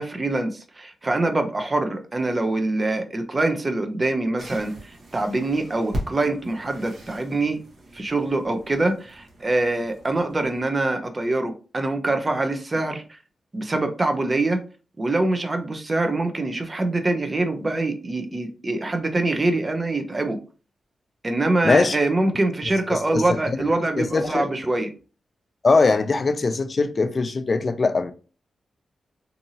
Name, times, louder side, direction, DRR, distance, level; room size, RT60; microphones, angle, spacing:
voice 1, 0.0-7.6 7.9-13.0 13.5-14.6 15.0-20.4 21.2-24.9, right 2 dB, 35° right, 0.5 m, -24 dB
sound 1, 4.4-10.7, equal, 65° right, 1.1 m, -38 dB
voice 2, 21.6-22.0 22.9-24.5 25.6-28.1, left 3 dB, 50° left, 0.3 m, -21 dB
2.7 x 2.6 x 2.6 m
cardioid pair, 55°, 0 cm